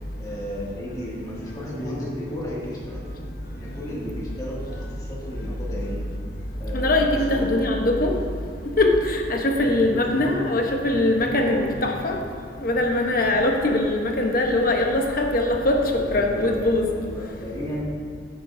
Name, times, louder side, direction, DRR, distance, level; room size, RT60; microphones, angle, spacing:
voice 1, 0.2-3.2 3.6-6.0 6.6-7.5 9.6-10.4 10.9-11.8 15.9-17.8, equal, 20° left, -6 dB, 2.1 m, -34 dB
voice 2, 6.7-8.2 8.8-12.2 12.6-15.8 16.1-16.9, left 2 dB, 55° left, 2 dB, 1.0 m, -21 dB
12.5 x 8.3 x 2.7 m, 2.3 s
head